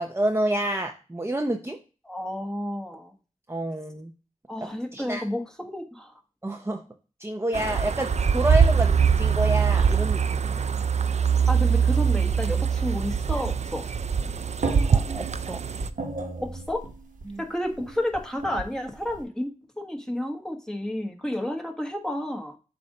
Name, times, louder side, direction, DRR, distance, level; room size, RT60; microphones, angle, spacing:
voice 1, 0.0-1.8 3.5-4.1 4.6-5.2 6.4-6.8 7.2-10.5 14.9-15.6 17.3-17.4, right 1 dB, 20° right, 3 dB, 0.7 m, -29 dB
voice 2, 2.0-3.1 4.5-6.1 11.5-13.8 16.4-16.8 17.4-19.5 19.8-22.6, left 1 dB, 5° left, 2 dB, 1.3 m, -31 dB
sound 1, 7.5-15.9, right 6 dB, 55° right, 0.4 m, -23 dB
sound 2, 14.0-19.2, right 3 dB, 75° right, 1.3 m, -35 dB
7.6 x 2.6 x 5.3 m, 0.35 s
cardioid pair, 40°, 14 cm